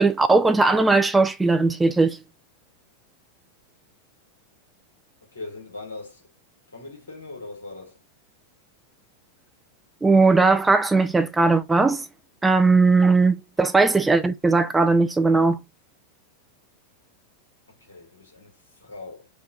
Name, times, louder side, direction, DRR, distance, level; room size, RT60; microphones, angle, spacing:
voice 1, 0.0-2.2 10.0-12.1 12.4-15.6, right 3 dB, 10° right, 0.3 m, -18 dB
voice 2, 5.3-6.3 6.7-8.0 17.8-19.3, left 3 dB, 70° left, 1.3 m, -40 dB
3.0 x 2.2 x 3.6 m
figure-of-eight pair, 90°, 0 cm